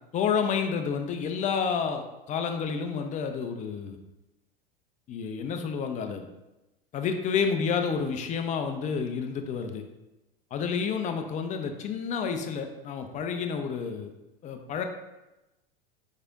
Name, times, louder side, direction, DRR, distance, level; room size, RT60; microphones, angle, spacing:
voice 1, 0.1-4.0 5.1-6.3 6.9-9.8 10.5-14.1 14.4-14.8, left 6 dB, 25° left, 6 dB, 0.5 m, -30 dB
4.9 x 4.5 x 2.4 m, 0.99 s
hypercardioid pair, 90°, 29 cm